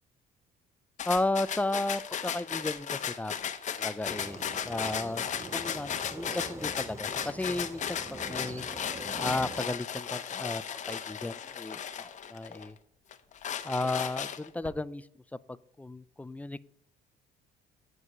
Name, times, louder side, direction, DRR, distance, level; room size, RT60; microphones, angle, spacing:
sound 1, 1.0-12.7 13.1-14.7, left 8 dB, 45° left, 0.9 m, -35 dB
voice 1, 1.1-3.5 3.8-4.4 4.6-8.0 8.2-8.7 9.2-12.8 13.6-15.1 15.5-16.6, left 2 dB, 10° left, 16 dB, 0.3 m, -34 dB
sound 2, 4.0-9.6, right 2 dB, 15° right, 0.7 m, -44 dB
9.7 x 4.7 x 7.9 m, 0.67 s
cardioid pair, 110°, 17 cm